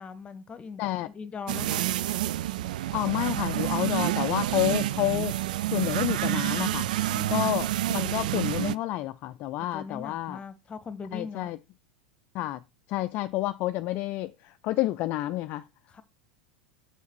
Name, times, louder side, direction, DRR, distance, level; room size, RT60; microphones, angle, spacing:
voice 1, 0.0-1.8 7.1-7.6 9.6-11.5 15.9-16.0, left 5 dB, 25° left, 1.1 m, -40 dB
sound 1, 1.5-8.8, right 14 dB, 65° right, 0.4 m, -28 dB
voice 2, 2.9-5.3 5.7-6.9 7.3-10.4 11.1-11.6 12.3-12.6 12.9-15.6, left 16 dB, 45° left, 0.4 m, -29 dB
7.1 x 4.0 x 6.2 m
figure-of-eight pair, 85°, 5 cm